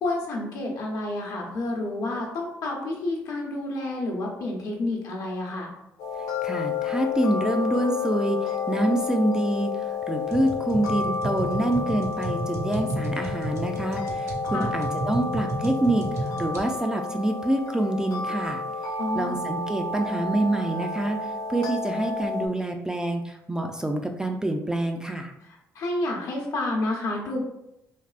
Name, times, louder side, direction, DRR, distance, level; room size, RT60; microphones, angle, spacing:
voice 1, 0.0-5.7 14.5-14.7 19.0-19.4 25.4-27.5, left 2 dB, 65° left, -1 dB, 0.8 m, -29 dB
sound 1, 6.0-22.5, left 5 dB, 85° left, 0.4 m, -31 dB
voice 2, 6.4-9.7 10.1-18.6 19.1-25.3, right 1 dB, 10° right, 4 dB, 0.3 m, -26 dB
sound 2, 10.3-16.6, right 2 dB, 50° right, 0.8 m, -32 dB
3.3 x 2.4 x 2.4 m, 0.84 s
supercardioid pair, 80°, 6 cm